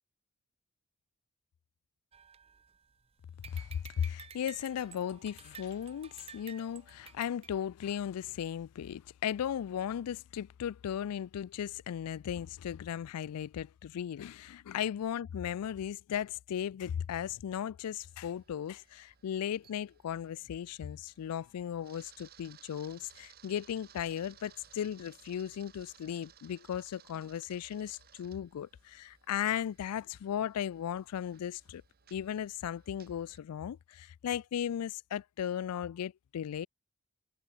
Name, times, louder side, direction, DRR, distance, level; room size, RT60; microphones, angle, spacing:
sound 1, 2.1-3.0 3.4-7.5, right 7 dB, 25° right, 0.6 m, -53 dB
voice 1, 3.5-31.8 32.1-36.7, left 9 dB, 80° left, 0.3 m, -36 dB
Camera, 17.8-33.4, right 9 dB, 45° right, 1.5 m, -61 dB
sound 2, 23.9-33.8, equal, 20° left, 2.4 m, -76 dB
head